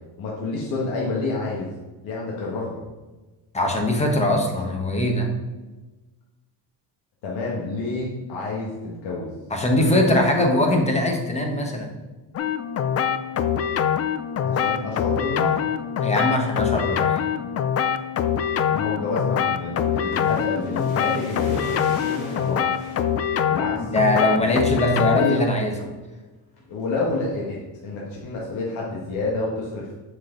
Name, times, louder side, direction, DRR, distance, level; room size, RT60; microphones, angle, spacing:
voice 1, 0.2-1.7 2.0-2.8 7.2-9.3 10.0-10.1 14.4-15.7 17.4-17.5 18.7-22.7 23.5-23.9 24.4-25.4 26.7-29.9, left 3 dB, 90° left, -4 dB, 1.6 m, -29 dB
voice 2, 3.5-5.3 9.5-11.9 16.0-17.2 23.8-25.7, left 1 dB, 15° left, 2 dB, 1.2 m, -21 dB
sound 1, 12.3-25.5, left 8 dB, 35° left, 0.4 m, -24 dB
sound 2, 19.8-23.0 23.6-24.2 24.6-24.7 25.0-25.3 25.8-26.1 26.6-27.3 27.5-27.6, left 1 dB, 60° left, 2.8 m, -42 dB
7.2 x 6.4 x 3.9 m, 1.2 s
cardioid pair, 145°, 44 cm